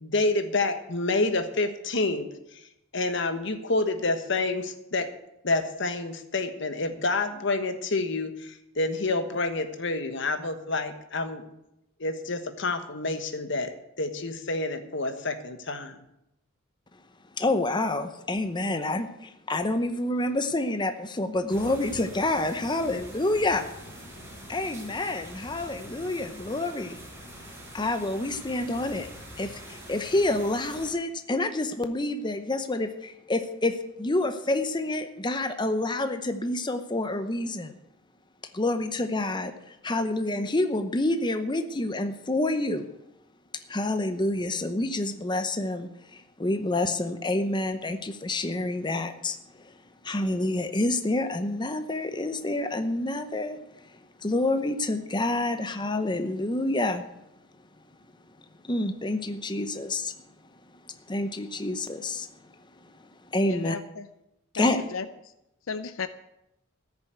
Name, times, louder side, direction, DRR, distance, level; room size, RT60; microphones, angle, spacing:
voice 1, 0.0-2.6 2.9-5.1 5.4-11.4 12.0-13.7 14.0-16.0, left 2 dB, 60° left, 8 dB, 1.4 m, -28 dB
voice 2, 17.4-23.6 24.5-27.0 27.7-29.1 29.4-37.7 38.5-42.8 43.7-49.8 50.0-53.6 54.2-57.0 58.6-60.1 60.9-62.5 63.3-63.8 64.5-64.8, left 2 dB, 20° left, 8 dB, 0.8 m, -28 dB
sound 1, 21.5-30.9, equal, 10° right, 5.5 m, -44 dB
voice 3, 63.4-64.1 64.6-65.1 65.7-66.1, left 4 dB, 80° left, 11 dB, 0.6 m, -34 dB
14.0 x 7.0 x 9.2 m, 0.86 s
head